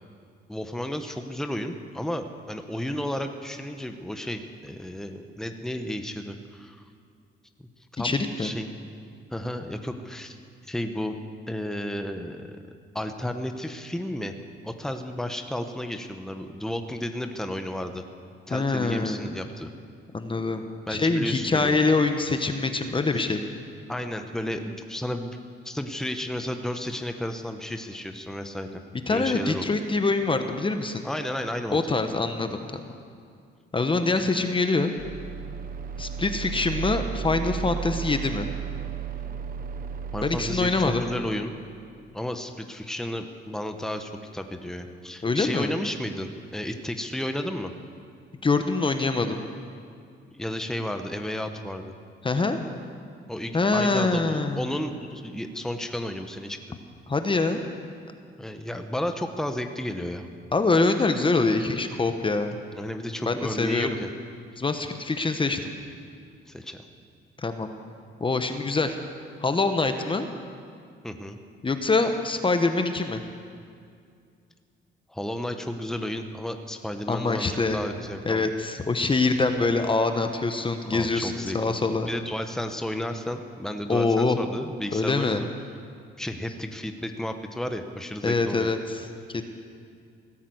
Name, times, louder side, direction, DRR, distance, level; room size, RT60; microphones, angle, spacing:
voice 1, 0.5-6.8 7.9-8.7 9.3-10.4 10.6-11.2 11.5-12.6 12.9-14.3 14.6-18.0 18.5-19.7 20.9-21.8 23.1-23.3 23.9-25.4 25.6-28.8 29.1-29.7 31.0-31.8 40.1-41.5 42.1-47.7 50.3-51.9 53.3-56.6 58.4-60.3 62.7-64.1 66.5-66.9 71.0-71.4 75.1-78.5 80.9-81.7 82.1-85.5 86.2-88.7, left 1 dB, ahead, 6 dB, 1.1 m, -32 dB
voice 2, 8.0-8.5 18.5-19.2 20.1-23.4 29.1-31.1 31.7-32.8 33.7-34.9 36.0-38.5 40.2-41.1 45.2-45.7 48.4-49.4 52.2-52.6 53.5-54.6 57.1-57.6 60.5-62.6 63.3-63.9 64.6-65.6 67.4-67.7 68.2-69.0 69.4-70.3 71.6-73.2 77.1-77.8 78.2-82.1 83.9-84.4 84.9-85.4 88.2-88.8 89.3-89.4, left 3 dB, 25° left, 7 dB, 1.1 m, -24 dB
sound 1, 35.0-40.7, right 8 dB, 45° right, 1.1 m, -34 dB
17.0 x 10.0 x 8.0 m, 2.3 s
cardioid pair, 90°, 20 cm